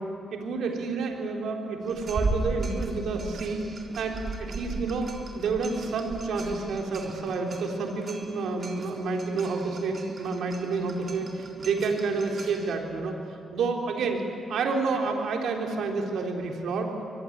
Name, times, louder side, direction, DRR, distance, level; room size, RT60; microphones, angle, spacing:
voice 1, 0.3-3.6 4.0-13.2 13.5-14.2 14.5-16.9, right 4 dB, 75° right, 2 dB, 3.6 m, -29 dB
sound 1, 1.8-12.8, right 3 dB, 55° right, 3.7 m, -37 dB
24.5 x 22.5 x 9.5 m, 2.5 s
hypercardioid pair, 45°, 0 cm